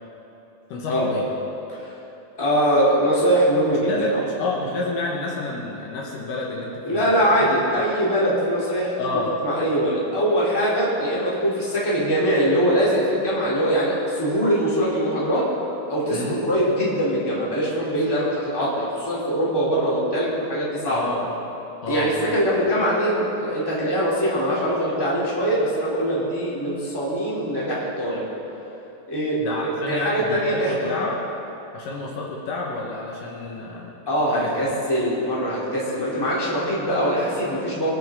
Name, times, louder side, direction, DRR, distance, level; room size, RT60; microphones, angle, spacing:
voice 1, 0.7-1.3 3.7-7.3 7.7-7.8 9.0-9.3 16.1-16.4 20.9-21.3 21.8-22.3 29.4-31.2 31.7-33.9 34.3-34.7, left 3 dB, 70° left, -2 dB, 2.8 m, -30 dB
voice 2, 2.4-4.2 6.8-15.5 15.9-21.1 21.9-28.3 29.1-30.9 34.1-37.9, equal, 5° left, -8 dB, 2.8 m, -22 dB
24.0 x 8.8 x 3.8 m, 3.0 s
omnidirectional pair, 4.1 m